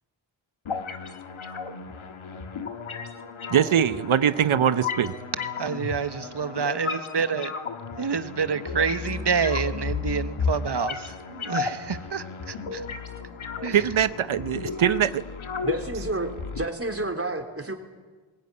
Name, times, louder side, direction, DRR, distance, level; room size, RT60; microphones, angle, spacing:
sound 1, 0.6-16.6, left 5 dB, 90° left, 1.5 m, -34 dB
voice 1, 3.5-5.1 13.7-15.2, right 9 dB, 80° right, 14 dB, 0.8 m, -22 dB
voice 2, 5.6-7.5 8.0-12.8 13.6-13.8, right 6 dB, 55° right, 11 dB, 1.3 m, -28 dB
voice 3, 15.6-17.8, right 2 dB, 30° right, 3 dB, 3.3 m, -30 dB
20.0 x 18.0 x 9.7 m, 1.3 s
wide cardioid pair, 60°, 48 cm